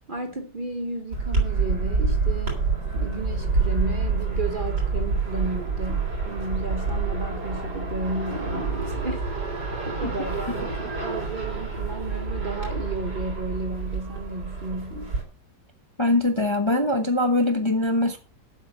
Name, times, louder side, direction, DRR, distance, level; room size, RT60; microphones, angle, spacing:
voice 1, 0.0-2.6 2.9-9.3 9.9-15.2, right 2 dB, 35° right, 1.0 m, -33 dB
sound 1, 1.1-15.2, right 4 dB, 70° right, 4.0 m, -27 dB
voice 2, 16.0-18.2, left 2 dB, 20° left, 0.9 m, -22 dB
7.9 x 6.2 x 7.7 m
omnidirectional pair, 1.8 m